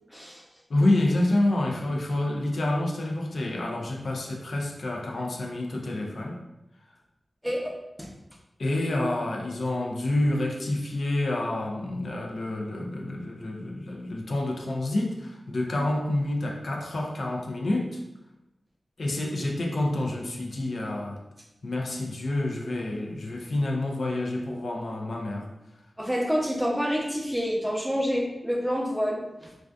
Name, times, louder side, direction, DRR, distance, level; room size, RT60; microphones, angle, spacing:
voice 1, 0.1-0.4 7.4-8.1 26.0-29.5, equal, 5° right, -2 dB, 0.5 m, -28 dB
voice 2, 0.7-6.4 8.6-18.0 19.0-21.2 21.6-25.5, left 1 dB, 80° left, 0 dB, 0.4 m, -28 dB
2.5 x 2.3 x 2.2 m, 0.93 s
wide cardioid pair, 60°, 0 cm